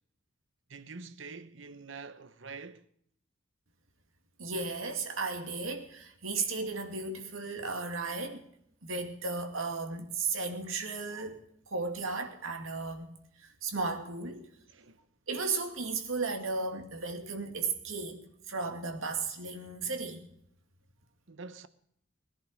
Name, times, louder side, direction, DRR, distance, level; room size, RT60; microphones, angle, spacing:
voice 1, 0.7-2.9 14.7-15.0 21.3-21.7, right 4 dB, 65° right, 1.0 m, -46 dB
voice 2, 4.4-8.5 8.8-11.4 11.7-14.5 15.3-20.3, right 4 dB, 80° right, 2.5 m, -35 dB
20.0 x 10.5 x 5.2 m
head